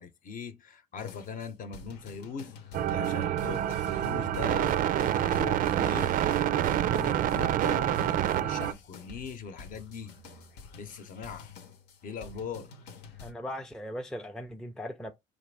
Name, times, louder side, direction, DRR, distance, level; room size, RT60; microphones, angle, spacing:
voice 1, 0.0-10.1 10.8-11.5 12.0-12.7, left 6 dB, 55° left, 0.8 m, -41 dB
sound 1, 1.0-13.3, left 4 dB, 85° left, 0.9 m, -50 dB
sound 2, 2.7-8.7, right 11 dB, 55° right, 0.4 m, -27 dB
voice 2, 13.2-15.1, equal, 5° left, 0.4 m, -38 dB
4.7 x 2.5 x 3.3 m
cardioid pair, 110°, 17 cm